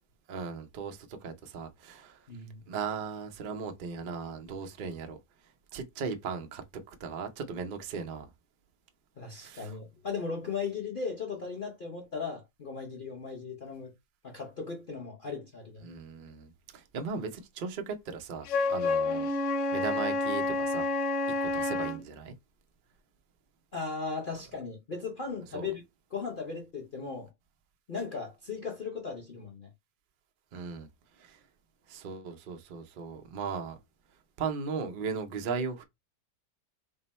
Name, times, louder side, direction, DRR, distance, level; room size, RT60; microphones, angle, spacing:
voice 1, 0.3-2.3 2.7-5.2 5.7-8.3 9.3-9.8 15.8-19.3 19.7-20.9 21.4-22.3 25.5-25.7 30.5-30.9 31.2-31.4 31.9-33.8 34.4-35.8, right 5 dB, 90° right, 0.4 m, -37 dB
voice 2, 2.3-2.6 9.2-13.9 14.2-15.9 23.7-25.8 26.1-27.3 27.9-29.7, left 5 dB, 40° left, 0.8 m, -37 dB
Wind instrument woodwind instrument, 18.5-22.0, left 3 dB, 70° left, 0.7 m, -29 dB
3.6 x 2.0 x 4.1 m
omnidirectional pair, 1.7 m